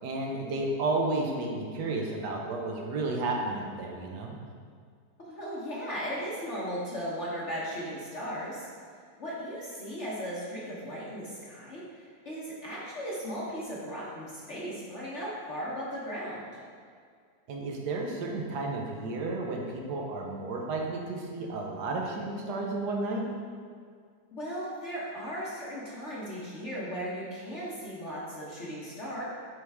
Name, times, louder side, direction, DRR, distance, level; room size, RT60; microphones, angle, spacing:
voice 1, 0.0-4.4 17.5-23.3, right 2 dB, 60° right, 0 dB, 1.4 m, -32 dB
voice 2, 5.2-8.7 9.2-16.5 24.3-29.2, equal, 40° left, -6 dB, 1.3 m, -37 dB
9.7 x 4.6 x 3.6 m, 2.1 s
omnidirectional pair, 2.2 m